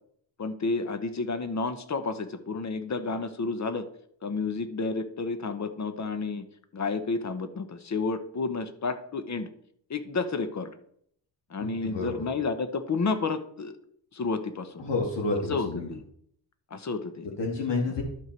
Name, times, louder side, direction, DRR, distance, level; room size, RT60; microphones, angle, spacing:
voice 1, 0.4-3.9 4.2-6.5 6.7-9.5 9.9-10.7 11.5-13.7 14.1-14.8 15.5-16.0 16.7-17.3, left 4 dB, 40° left, 10 dB, 1.0 m, -31 dB
voice 2, 11.6-12.1 14.8-15.9 17.4-18.0, left 3 dB, 65° left, -2 dB, 2.4 m, -29 dB
11.5 x 5.5 x 4.5 m, 0.67 s
cardioid pair, 100°, 45 cm